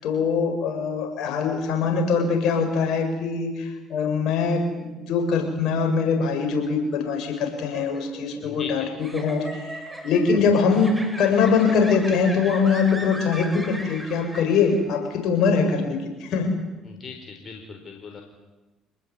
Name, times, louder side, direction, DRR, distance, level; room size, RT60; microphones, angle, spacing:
voice 1, 0.0-9.8 10.0-16.5, left 5 dB, 65° left, 4 dB, 7.6 m, -23 dB
sound 1, 7.4-15.0, right 1 dB, 5° right, 5.4 m, -38 dB
voice 2, 8.4-8.9 16.8-18.2, left 5 dB, 45° left, 4 dB, 4.5 m, -39 dB
27.0 x 20.0 x 9.9 m, 1.2 s
hypercardioid pair, 60°, 0 cm